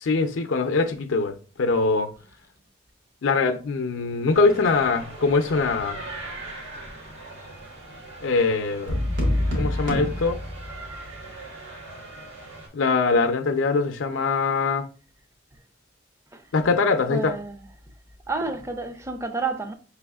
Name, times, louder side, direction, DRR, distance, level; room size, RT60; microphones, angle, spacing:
voice 1, 0.0-2.1 3.2-6.0 8.2-9.0 9.5-10.4 12.7-14.9 16.5-17.3, left 4 dB, 85° left, 0.5 m, -22 dB
sound 1, 4.3-12.7, right 2 dB, 85° right, 1.6 m, -40 dB
sound 2, 8.9-11.1, left 1 dB, 70° right, 1.4 m, -26 dB
voice 2, 17.1-17.6 18.3-19.7, right 3 dB, 15° right, 0.4 m, -30 dB
5.4 x 3.4 x 2.3 m
head